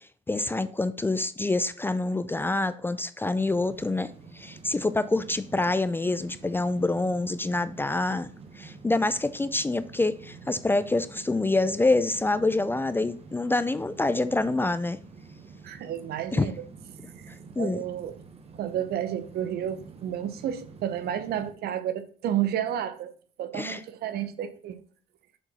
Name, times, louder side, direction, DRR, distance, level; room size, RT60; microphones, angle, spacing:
voice 1, 0.3-8.3 8.6-15.0 16.3-16.5 17.6-17.8 23.5-23.8, left 2 dB, 10° left, 0.4 m, -26 dB
sound 1, 3.4-21.5, right 4 dB, 35° right, 1.2 m, -48 dB
voice 2, 15.6-16.6 17.6-18.2 18.6-23.1 23.4-24.8, right 10 dB, 70° right, 0.9 m, -31 dB
6.6 x 4.5 x 5.5 m
cardioid pair, 110°, 17 cm